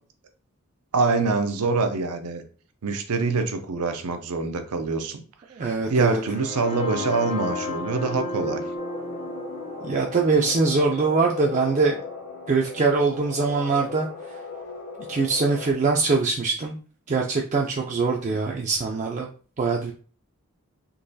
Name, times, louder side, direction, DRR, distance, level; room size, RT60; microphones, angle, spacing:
voice 1, 0.9-2.4 2.8-5.2 5.9-8.6 18.3-18.4, right 3 dB, 90° right, 7 dB, 0.6 m, -25 dB
voice 2, 5.5-6.2 9.8-11.9 12.5-14.1 15.1-16.8 17.1-19.3 19.6-19.9, right 4 dB, 35° right, 0 dB, 0.3 m, -23 dB
sound 1, 6.0-13.9, left 2 dB, 30° left, 0.4 m, -35 dB
sound 2, 8.8-15.7, left 3 dB, 50° left, 0.9 m, -38 dB
3.8 x 2.9 x 2.6 m, 0.40 s
head